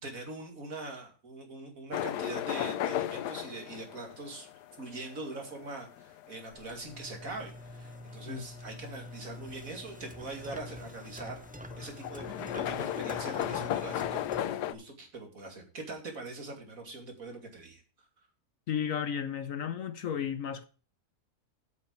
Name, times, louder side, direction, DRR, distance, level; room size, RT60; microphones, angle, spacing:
voice 1, 0.0-4.5 4.8-11.4 11.8-18.1, right 2 dB, 60° right, 2.8 m, -42 dB
sound 1, 1.9-14.7, left 11 dB, 90° left, 1.3 m, -36 dB
sound 2, 6.5-14.4, equal, 15° right, 0.3 m, -47 dB
voice 2, 18.7-20.6, left 8 dB, 60° left, 1.1 m, -33 dB
8.6 x 8.1 x 5.1 m
omnidirectional pair, 1.7 m